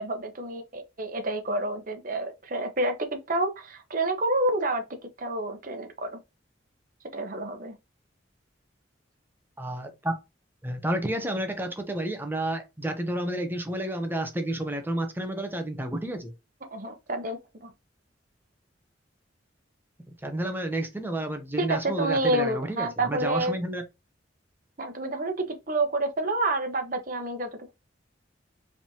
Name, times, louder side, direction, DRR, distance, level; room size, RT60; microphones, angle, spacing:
voice 1, 0.0-4.8 5.2-6.2 7.1-7.8 16.6-17.7 21.6-23.6 24.8-25.3 25.7-27.5, right 2 dB, 45° right, 1.0 m, -28 dB
voice 2, 9.6-10.1 10.6-16.3 20.2-23.8, right 1 dB, 10° right, 1.0 m, -30 dB
5.0 x 3.6 x 2.9 m
head